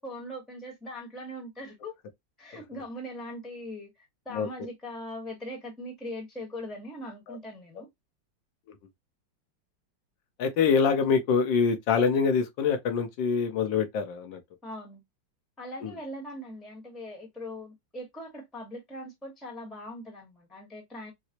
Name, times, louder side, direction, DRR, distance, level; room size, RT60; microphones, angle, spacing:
voice 1, 0.0-1.9 2.4-7.9 14.6-15.0 15.6-21.1, left 1 dB, ahead, 0.8 m, -40 dB
voice 2, 10.4-14.4 15.8-15.9, left 6 dB, 80° left, 1.5 m, -25 dB
4.7 x 2.0 x 2.8 m
omnidirectional pair, 2.0 m